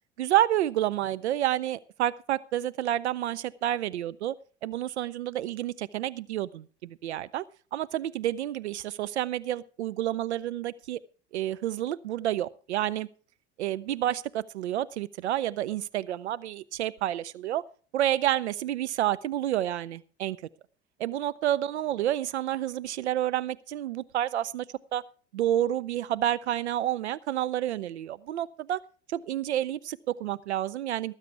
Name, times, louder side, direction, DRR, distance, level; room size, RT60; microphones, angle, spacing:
voice 1, 0.2-4.3 4.6-7.4 7.7-11.0 11.3-13.1 13.6-17.6 17.9-20.4 21.0-24.6 24.9-25.0 25.3-28.8 29.1-31.1, right 12 dB, 75° right, 18 dB, 0.5 m, -29 dB
18.5 x 8.2 x 4.5 m, 0.41 s
figure-of-eight pair, 70°, 34 cm